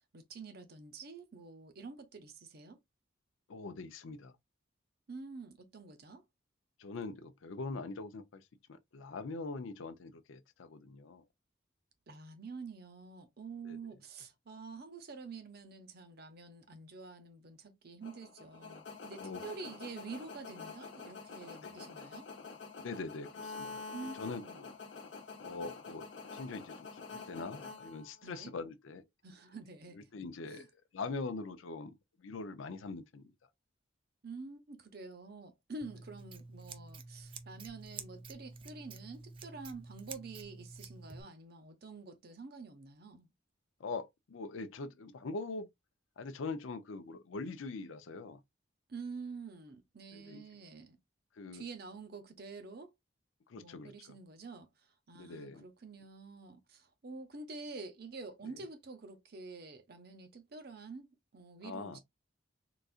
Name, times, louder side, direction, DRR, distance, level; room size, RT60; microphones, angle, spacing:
voice 1, 0.1-2.8 5.1-6.2 12.1-22.3 23.9-24.7 28.2-28.5 29.2-30.1 30.5-30.7 34.2-43.3 48.9-51.0 51.5-52.9 53.6-54.7 55.1-61.1 61.3-62.0, right 4 dB, 50° right, 0.7 m, -48 dB
voice 2, 3.5-4.3 6.8-8.4 8.7-11.2 13.6-13.9 19.2-19.4 21.6-21.9 22.8-23.8 24.2-24.7 25.4-26.1 26.3-29.0 29.9-30.7 30.9-33.3 43.8-45.7 46.2-48.4 50.1-50.4 51.4-51.6 53.5-54.1 55.1-55.6 58.5-58.6 61.6-62.0, left 3 dB, 80° left, 0.5 m, -43 dB
sound 1, 18.0-28.5, left 4 dB, 60° left, 0.8 m, -47 dB
Scissors, 35.8-41.2, right 4 dB, 25° right, 0.3 m, -49 dB
3.9 x 2.4 x 2.4 m
head